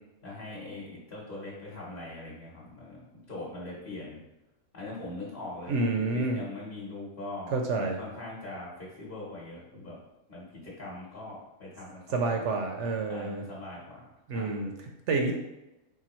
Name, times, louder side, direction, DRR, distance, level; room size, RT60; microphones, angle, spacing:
voice 1, 0.2-4.2 4.7-7.5 7.8-10.0 10.3-12.5 13.1-14.5, left 2 dB, 35° left, -6 dB, 1.2 m, -42 dB
voice 2, 5.7-6.4 7.5-8.0 12.1-13.4 14.3-14.7 15.1-15.3, right 3 dB, 65° right, 3 dB, 0.8 m, -28 dB
4.7 x 3.4 x 3.0 m, 0.96 s
omnidirectional pair, 1.5 m